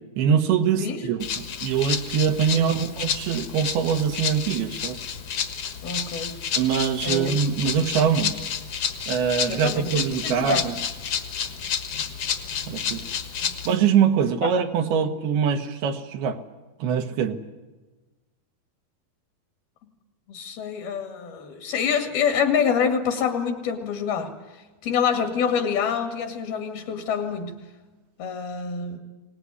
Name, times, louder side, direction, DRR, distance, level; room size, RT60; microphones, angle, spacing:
voice 1, 0.2-5.0 6.6-8.4 9.1-10.7 12.7-13.0 13.6-16.4 16.8-17.4, right 7 dB, 80° right, 6 dB, 3.4 m, -23 dB
voice 2, 0.7-1.1 2.5-2.7 5.8-6.5 7.0-7.3 9.5-10.7 13.4-13.6 14.4-14.5 15.0-15.1 20.3-24.3 24.8-27.6 28.2-29.0, left 7 dB, 75° left, 5 dB, 3.9 m, -26 dB
Rattle (instrument), 1.2-13.7, left 7 dB, 50° left, 1.9 m, -30 dB
23.0 x 19.5 x 9.6 m, 1.2 s
omnidirectional pair, 4.4 m